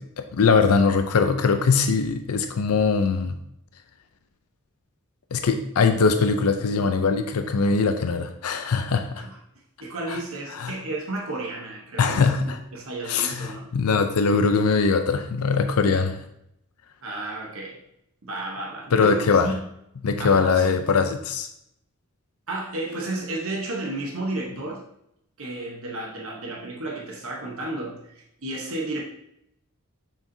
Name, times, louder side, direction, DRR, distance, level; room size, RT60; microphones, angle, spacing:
voice 1, 0.0-3.4 5.3-9.2 10.1-10.2 10.5-10.7 12.0-12.6 13.0-16.2 18.9-19.5 20.0-21.5, left 5 dB, 80° left, 7 dB, 0.5 m, -21 dB
voice 2, 9.8-13.7 17.0-17.8 18.2-19.6 20.2-20.8 22.5-24.8 25.4-29.0, right 2 dB, 65° right, -1 dB, 1.1 m, -32 dB
7.1 x 5.8 x 2.7 m, 0.77 s
head